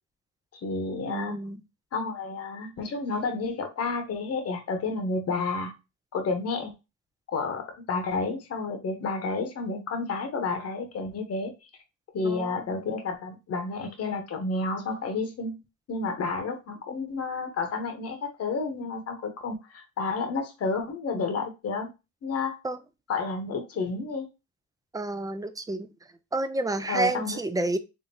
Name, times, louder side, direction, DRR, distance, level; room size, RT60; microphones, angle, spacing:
voice 1, 0.5-1.4 1.9-5.7 6.1-6.7 7.3-11.5 12.1-15.6 15.9-21.9 22.2-22.6 23.1-24.3 26.9-27.4, left 4 dB, 55° left, 5 dB, 1.0 m, -30 dB
voice 2, 1.1-1.6 12.2-12.8 22.6-22.8 24.9-25.9 26.3-27.8, right 2 dB, 10° right, 10 dB, 0.5 m, -30 dB
3.7 x 3.3 x 2.8 m, 0.26 s
cardioid pair, 90°, 30 cm